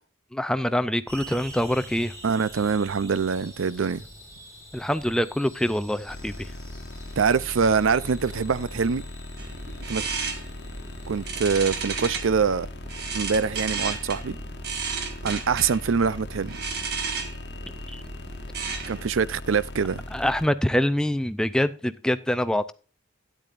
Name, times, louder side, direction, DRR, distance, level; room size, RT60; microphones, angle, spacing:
voice 1, 0.3-2.1 4.7-6.5 17.9-18.0 20.1-22.7, left 1 dB, 5° left, 0.4 m, -25 dB
sound 1, 1.1-11.4, equal, 15° right, 4.4 m, -46 dB
voice 2, 2.2-4.0 7.2-9.0 9.9-10.0 11.1-12.7 13.1-14.4 15.2-16.6 18.9-20.0, right 5 dB, 85° right, 0.5 m, -24 dB
sound 2, 6.1-20.5, left 1 dB, 55° left, 1.1 m, -39 dB
sound 3, 9.4-19.1, right 5 dB, 55° right, 1.7 m, -34 dB
12.5 x 10.0 x 2.5 m
head